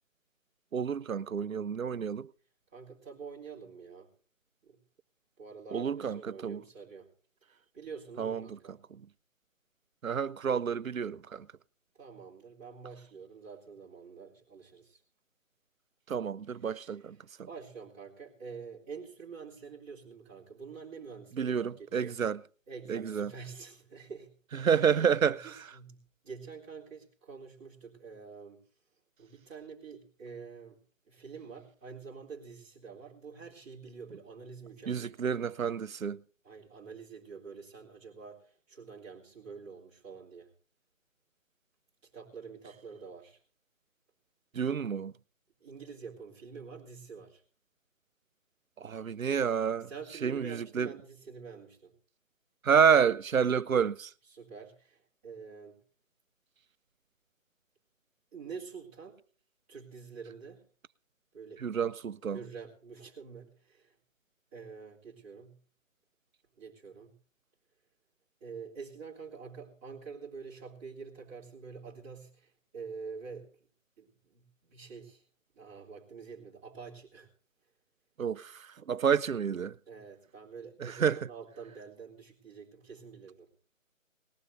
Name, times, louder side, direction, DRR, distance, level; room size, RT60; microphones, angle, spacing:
voice 1, 0.7-2.3 5.7-6.6 8.2-8.4 10.0-11.5 16.1-17.2 21.4-22.4 22.9-23.3 24.6-25.6 34.9-36.2 44.5-45.1 48.8-49.9 50.2-50.9 52.6-54.1 61.6-62.4 78.2-79.8 80.8-81.2, right 7 dB, 85° right, 0.6 m, -29 dB
voice 2, 2.7-4.1 4.6-4.8 5.4-7.1 7.7-8.8 12.0-15.0 16.6-16.9 17.5-22.2 22.7-24.7 25.4-28.6 29.2-30.8 31.1-35.1 36.4-40.5 42.0-43.4 45.6-47.4 49.9-51.9 54.3-55.8 58.3-59.2 59.7-60.6 61.3-61.6 62.3-63.9 64.5-65.6 66.6-67.2 68.4-73.5 74.0-75.2 75.5-77.3 79.9-83.5, right 5 dB, 10° right, 2.2 m, -47 dB
19.5 x 15.5 x 2.6 m
figure-of-eight pair, 165°, 40 cm